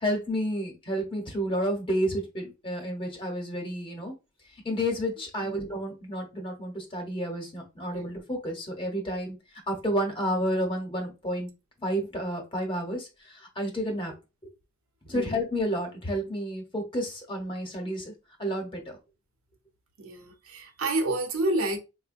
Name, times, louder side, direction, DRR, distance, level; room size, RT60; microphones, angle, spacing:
voice 1, 0.0-4.1 4.6-9.4 9.7-11.5 11.8-13.1 13.6-14.1 15.1-18.1 18.4-18.8, equal, 25° left, 0.9 m, -30 dB
voice 2, 20.0-21.8, right 2 dB, 85° right, 0.8 m, -29 dB
4.2 x 2.1 x 2.5 m
head